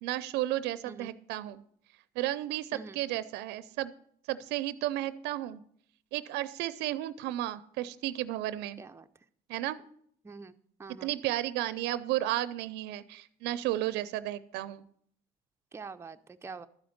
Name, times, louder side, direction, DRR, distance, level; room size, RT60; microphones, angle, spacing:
voice 1, 0.0-1.6 2.2-3.9 4.3-5.6 6.1-8.8 9.5-9.8 11.0-14.8, right 14 dB, 90° right, 14 dB, 0.5 m, -33 dB
voice 2, 15.7-16.7, right 4 dB, 15° right, 7 dB, 0.5 m, -45 dB
12.5 x 5.1 x 7.8 m, 0.63 s
cardioid pair, 110°, 17 cm